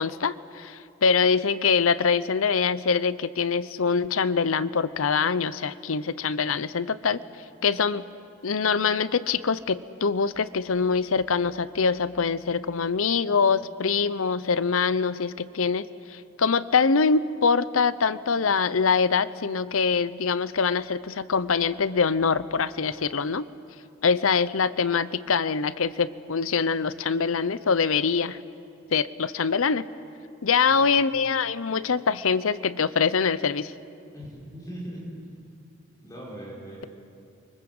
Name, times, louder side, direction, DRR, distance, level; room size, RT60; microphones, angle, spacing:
voice 1, 0.0-7.2 7.6-8.0 8.4-23.4 24.0-28.4 28.9-29.8 30.4-33.7, left 5 dB, 85° left, 16 dB, 0.7 m, -24 dB
voice 2, 30.7-31.1 34.1-35.1 36.0-36.9, equal, 15° left, -5 dB, 5.6 m, -40 dB
28.5 x 24.0 x 7.9 m, 2.6 s
head